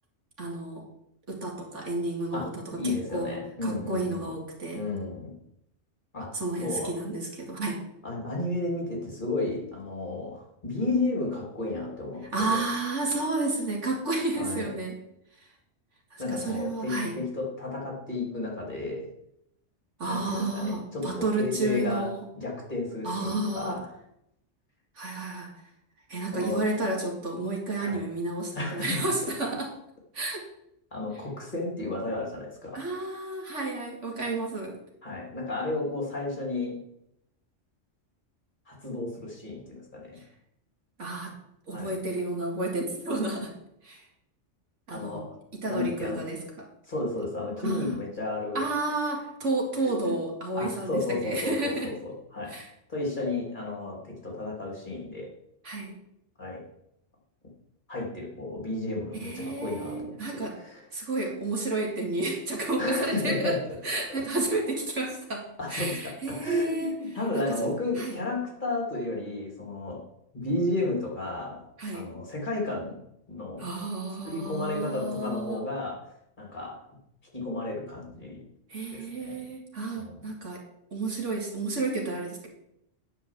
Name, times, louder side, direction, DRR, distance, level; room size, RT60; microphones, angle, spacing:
voice 1, 0.4-0.9 1.3-3.4 3.6-4.8 6.3-7.8 12.3-15.0 16.1-17.1 20.0-22.2 23.0-23.8 25.0-25.5 26.1-29.7 30.1-30.5 32.7-34.8 41.0-41.3 41.7-43.5 43.8-44.0 44.9-45.2 45.5-46.7 47.6-48.0 48.5-51.9 52.5-52.7 55.6-56.0 59.2-60.6 60.9-63.6 63.8-66.9 67.3-67.7 68.0-68.2 71.8-72.1 73.6-75.6 78.7-80.6 80.9-82.5, right 2 dB, 75° right, 0 dB, 2.6 m, -31 dB
voice 2, 2.3-4.4 4.7-5.3 6.1-6.9 8.0-12.6 14.4-14.7 16.2-19.1 20.1-23.9 26.3-26.6 27.8-28.1 28.5-29.0 30.9-32.8 35.0-36.8 38.7-40.2 41.7-41.9 44.9-45.4 45.7-46.2 46.9-48.6 50.0-50.2 50.5-52.5 52.9-55.3 56.4-56.6 57.9-60.8 62.8-63.6 64.2-64.3 65.6-70.0 70.3-71.7 71.9-73.0 73.3-73.7 74.2-76.0 76.4-76.8 77.3-78.4 78.9-79.4 79.9-80.2, left 2 dB, 40° left, -1 dB, 3.1 m, -32 dB
9.8 x 5.5 x 7.4 m, 0.79 s
omnidirectional pair, 1.3 m